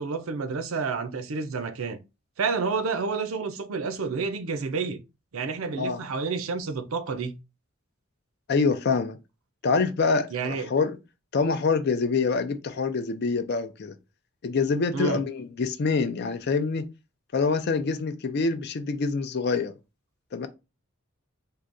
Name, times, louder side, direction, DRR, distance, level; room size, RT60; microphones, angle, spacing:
voice 1, 0.0-2.0 2.4-5.0 5.3-7.4 10.3-10.7 14.9-15.2, right 4 dB, 80° right, 0.5 m, -29 dB
voice 2, 8.5-9.2 9.6-11.0 11.3-13.9 14.4-16.9 17.3-19.7 20.3-20.5, left 4 dB, 50° left, 0.5 m, -25 dB
4.6 x 2.2 x 2.6 m
head